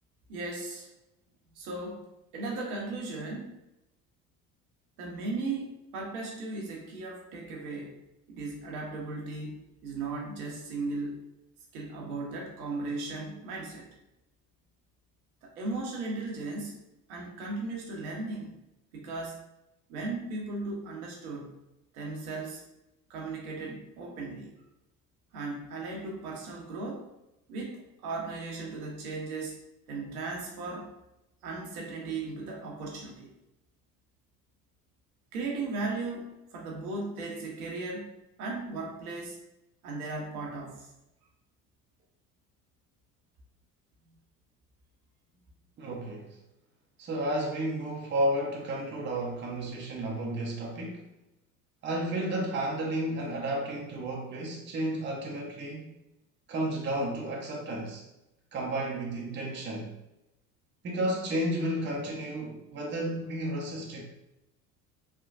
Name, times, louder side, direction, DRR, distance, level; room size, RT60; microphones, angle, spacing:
voice 1, 0.3-0.9 1.5-3.6 5.0-11.2 11.7-14.0 15.4-16.7 17.1-18.6 18.9-19.4 19.9-21.6 21.9-22.6 23.1-24.5 25.3-27.1 27.5-29.6 29.9-30.9 31.4-33.3 35.3-39.4 39.8-41.0, right 3 dB, 70° right, -1 dB, 0.9 m, -37 dB
voice 2, 45.8-46.4 47.0-51.0 51.8-55.9 56.5-58.1 58.5-59.9 60.8-64.0, right 1 dB, 25° right, -2 dB, 0.7 m, -32 dB
3.3 x 2.1 x 2.5 m, 0.91 s
hypercardioid pair, 70°, 46 cm